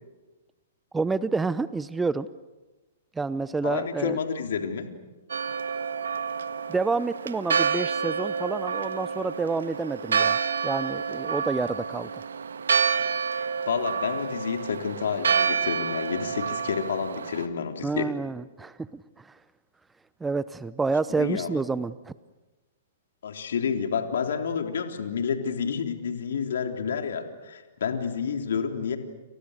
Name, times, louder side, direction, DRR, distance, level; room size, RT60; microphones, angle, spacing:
voice 1, 0.9-2.3 3.1-4.2 6.7-10.4 10.6-12.2 17.8-19.4 20.2-22.1, right 4 dB, 10° right, 16 dB, 0.8 m, -29 dB
voice 2, 3.6-4.9 13.3-18.1 21.2-21.6 23.2-29.0, left 6 dB, 65° left, 4 dB, 3.6 m, -29 dB
Church bell, 5.3-17.5, right 6 dB, 75° right, 1.6 m, -28 dB
30.0 x 29.5 x 6.7 m, 1.1 s
figure-of-eight pair, 115°, 0 cm